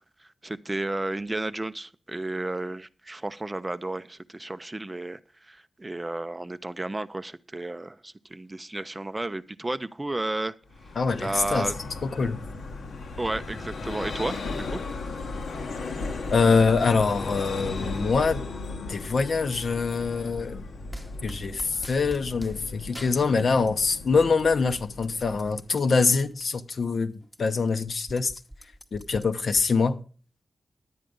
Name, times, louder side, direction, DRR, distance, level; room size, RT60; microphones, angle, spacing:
voice 1, 0.4-10.6 11.2-11.8 13.2-14.8, right 2 dB, 15° right, 0.4 m, -32 dB
Vehicle, 10.7-26.2, left 3 dB, 80° left, 1.4 m, -36 dB
voice 2, 11.0-11.7 12.0-12.4 16.3-18.5 18.9-20.6 21.2-28.3 28.9-30.0, left 4 dB, 55° left, 0.8 m, -24 dB
sound 1, 20.9-22.6 22.9-24.1 24.4-26.5 26.9-27.0 27.2-29.6, equal, 5° left, 0.9 m, -44 dB
11.0 x 9.0 x 5.2 m
wide cardioid pair, 165°, 0 cm